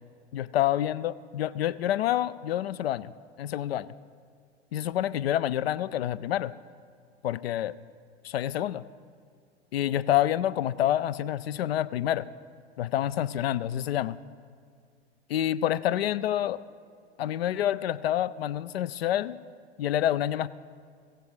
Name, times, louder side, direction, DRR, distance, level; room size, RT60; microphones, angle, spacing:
voice 1, 0.3-3.1 3.4-3.9 4.7-6.5 7.2-7.7 8.2-8.8 9.7-12.3 12.8-14.2 15.3-16.6 17.2-19.4 19.8-20.5, left 12 dB, 65° left, 17 dB, 0.4 m, -27 dB
16.0 x 15.0 x 3.2 m, 2.1 s
figure-of-eight pair, 85°, 33 cm